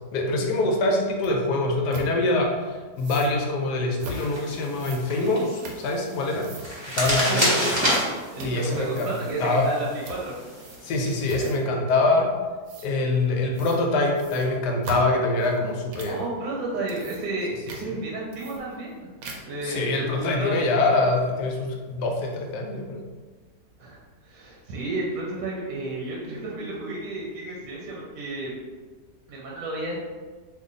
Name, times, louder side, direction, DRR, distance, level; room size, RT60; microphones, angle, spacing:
voice 1, 0.1-6.5 6.9-7.5 8.4-9.1 9.4-9.7 10.8-12.3 12.8-16.2 19.6-23.0, left 2 dB, 85° left, 1 dB, 1.2 m, -24 dB
sound 1, 1.2-1.3 1.9-2.1 3.0-3.3 4.0-4.3 4.8-6.1 6.4-6.7 7.0-7.2 7.6-8.0 8.3-8.6 8.9-9.4 10.0-10.2 10.6-10.9 11.3-11.7 12.7-12.9 13.5-13.8 14.1-16.2 16.7-17.4 17.7-17.8 18.3-18.9 19.2-19.6, right 1 dB, 90° right, 1.2 m, -39 dB
sound 2, 4.0-11.4, equal, 30° right, 0.5 m, -30 dB
voice 2, 7.1-7.9 8.3-10.4 11.4-11.5 16.1-19.1 19.4-20.7 23.8-28.5 29.3-30.0, right 2 dB, 65° right, -3 dB, 1.0 m, -32 dB
2.9 x 2.5 x 3.8 m, 1.4 s
omnidirectional pair, 1.8 m